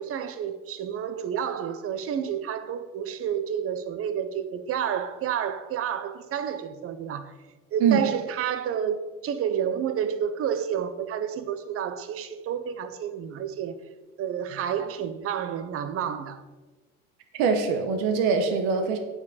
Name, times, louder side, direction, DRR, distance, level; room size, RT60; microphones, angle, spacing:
voice 1, 0.0-7.3 7.7-13.8 14.2-16.4, right 8 dB, 45° right, 0.8 m, -30 dB
voice 2, 17.3-19.0, right 5 dB, 75° right, 1.0 m, -23 dB
8.1 x 4.9 x 5.0 m
hypercardioid pair, 80°, 32 cm